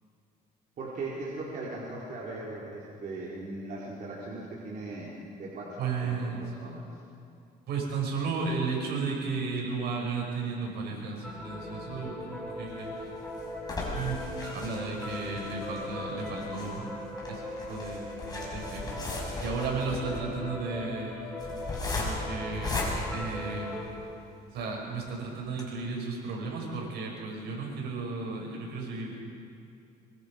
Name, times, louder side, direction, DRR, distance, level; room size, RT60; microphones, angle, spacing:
voice 1, 0.8-6.8, right 2 dB, 50° right, -6 dB, 4.4 m, -39 dB
voice 2, 5.8-6.4 7.7-12.9 13.9-14.2 14.5-17.0 17.3-17.4 17.7-19.1 19.4-21.2 21.9-22.8 23.1-23.7 24.5-29.2, right 4 dB, 75° right, -1 dB, 6.5 m, -34 dB
sound 1, 11.2-23.8, left 1 dB, 5° left, 6.4 m, -39 dB
sound 2, 12.7-24.1 24.6-24.7 25.0-25.1 25.5-25.6, left 2 dB, 25° left, 6.1 m, -37 dB
24.5 x 24.0 x 5.4 m, 2.5 s
cardioid pair, 110°, 17 cm